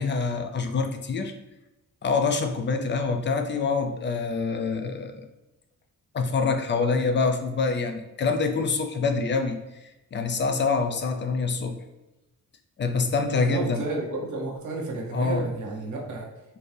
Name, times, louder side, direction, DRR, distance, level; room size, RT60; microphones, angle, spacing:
voice 1, 0.0-1.3 2.0-5.3 6.1-11.8 12.8-13.8 15.1-15.4, left 4 dB, 35° left, 6 dB, 0.4 m, -26 dB
voice 2, 13.2-16.3, right 2 dB, 60° right, -2 dB, 1.0 m, -31 dB
4.3 x 2.7 x 3.2 m, 1.0 s
wide cardioid pair, 160°, 33 cm